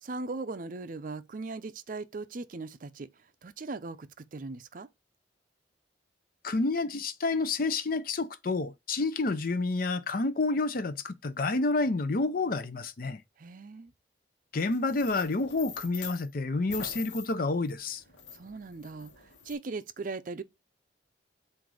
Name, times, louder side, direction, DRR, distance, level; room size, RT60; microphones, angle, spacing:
voice 1, 0.0-4.9 13.4-13.9 18.3-20.4, right 3 dB, 45° right, 0.5 m, -39 dB
voice 2, 6.4-13.2 14.5-18.0, left 3 dB, 50° left, 0.6 m, -29 dB
sound 1, 14.6-16.3 16.7-19.5, left 7 dB, 75° left, 1.1 m, -44 dB
7.7 x 2.6 x 4.7 m
head